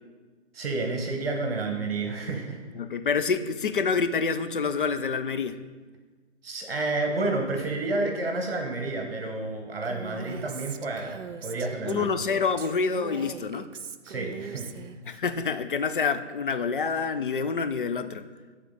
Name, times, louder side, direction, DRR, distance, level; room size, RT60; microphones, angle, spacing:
voice 1, 0.5-2.6 6.4-12.1 14.0-14.7, right 2 dB, 55° right, 3 dB, 1.1 m, -30 dB
voice 2, 2.8-5.6 11.9-13.7 15.1-18.3, left 5 dB, 45° left, 10 dB, 0.4 m, -27 dB
Female speech woman speaking, 9.8-15.2, right 7 dB, 90° right, 0.5 m, -41 dB
11.0 x 3.7 x 4.0 m, 1.4 s
figure-of-eight pair, 145°, 36 cm